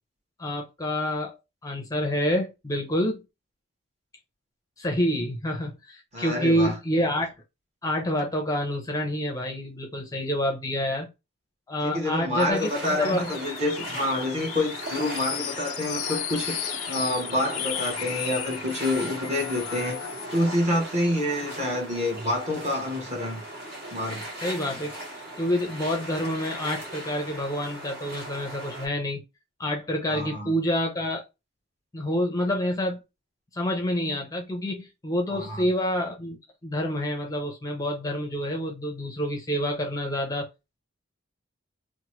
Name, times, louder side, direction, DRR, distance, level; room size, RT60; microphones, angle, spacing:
voice 1, 0.4-3.2 4.8-7.3 7.8-11.1 11.7-12.7 13.0-13.3 24.4-24.9 25.4-29.2 29.6-31.2 31.9-33.0 33.5-36.4 36.6-40.5, equal, 15° left, 0.5 m, -27 dB
voice 2, 6.1-6.8 11.8-16.6 16.9-20.0 20.3-23.4 23.9-24.2 30.1-30.5 35.3-35.7, left 1 dB, 35° right, 1.0 m, -27 dB
sound 1, 12.4-20.4, left 12 dB, 80° left, 0.4 m, -35 dB
sound 2, 12.5-28.9, right 1 dB, 55° right, 1.5 m, -38 dB
2.9 x 2.1 x 3.0 m
head